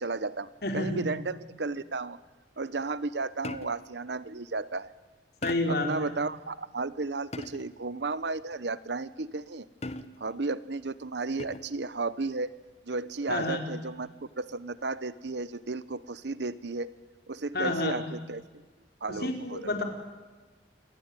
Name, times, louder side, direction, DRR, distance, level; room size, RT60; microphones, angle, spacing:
voice 1, 0.0-0.5 0.7-2.2 2.6-4.9 5.7-9.7 10.2-12.5 12.9-14.1 14.4-16.9 17.3-18.4 19.0-19.6, right 3 dB, 65° right, 17 dB, 0.9 m, -33 dB
voice 2, 0.6-1.0 5.4-6.1 13.3-13.6 17.5-18.0 19.1-19.8, left 2 dB, 55° left, 4 dB, 4.9 m, -29 dB
sound 1, 3.4-4.0 5.4-5.9 7.3-7.8 9.8-10.4 11.4-11.9 13.3-13.7, left 2 dB, 35° left, 1.3 m, -40 dB
28.5 x 22.5 x 9.1 m, 1.3 s
head